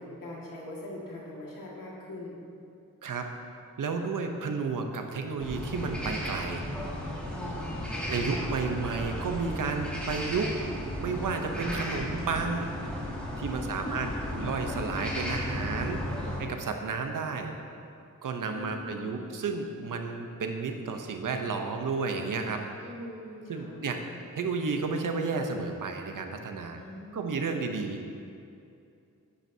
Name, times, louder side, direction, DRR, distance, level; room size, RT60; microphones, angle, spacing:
voice 1, 0.0-2.4 7.7-8.2 13.5-14.5 18.5-19.2 22.8-24.0 26.8-27.3, left 1 dB, 85° left, -4 dB, 2.1 m, -43 dB
voice 2, 3.8-6.6 8.1-10.6 11.0-12.7 13.4-16.0 16.4-17.5 18.2-22.6 23.5-24.0 24.3-26.8 27.1-28.0, right 4 dB, 75° right, 4 dB, 0.9 m, -32 dB
sound 1, 5.4-16.4, equal, 5° left, 2.2 m, -34 dB
10.0 x 9.2 x 2.8 m, 2.5 s
cardioid pair, 75°, 32 cm